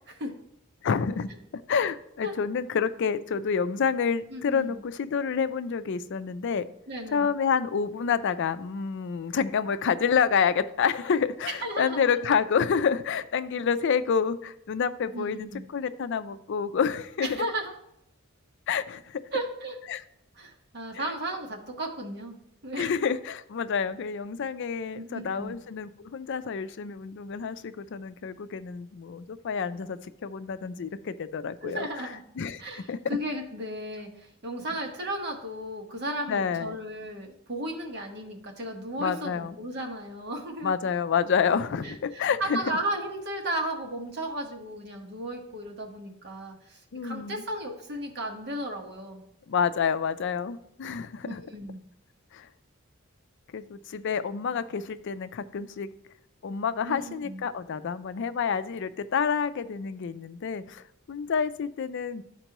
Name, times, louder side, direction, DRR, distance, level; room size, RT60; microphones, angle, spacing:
voice 1, 0.8-1.3 1.7-6.7 7.1-17.4 18.7-19.2 19.9-20.0 20.9-21.0 22.8-32.1 32.4-32.6 32.9-33.0 36.3-36.8 39.0-39.6 40.6-42.6 46.9-47.4 49.5-51.4 52.3-52.5 53.5-55.9 56.4-62.2, left 6 dB, 60° left, 13 dB, 0.4 m, -28 dB
voice 2, 4.3-4.8 6.9-7.3 11.6-12.1 15.1-15.6 17.2-17.7 19.3-19.8 20.4-22.4 22.6-22.9 24.9-25.5 31.6-32.2 32.6-40.7 41.8-49.2 51.2-51.8 56.8-57.4, right 1 dB, 55° right, 1 dB, 1.3 m, -35 dB
12.0 x 4.4 x 3.0 m, 0.77 s
head